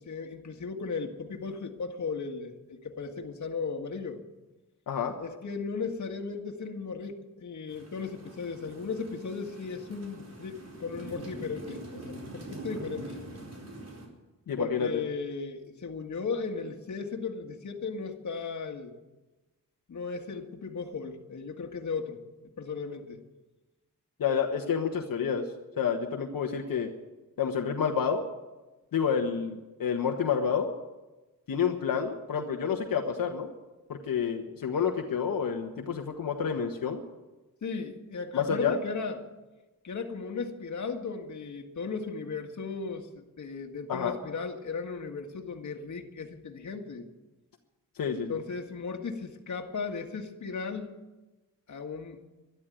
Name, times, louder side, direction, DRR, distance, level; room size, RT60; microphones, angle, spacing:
voice 1, 0.0-4.2 5.2-13.2 14.6-18.9 19.9-22.2 22.6-23.2 37.6-39.3 39.8-47.1 48.1-51.0 51.7-52.2, left 5 dB, 55° left, 4 dB, 1.9 m, -36 dB
sound 1, 7.7-14.1, right 1 dB, 50° right, 4.2 m, -44 dB
voice 2, 14.5-15.0 24.2-25.5 25.8-26.9 27.4-28.2 28.9-30.7 31.5-33.5 33.9-37.0 38.3-38.8 43.9-44.2 48.0-48.4, left 7 dB, 80° left, 2 dB, 1.4 m, -29 dB
12.5 x 12.0 x 9.3 m, 1.1 s
cardioid pair, 95°, 33 cm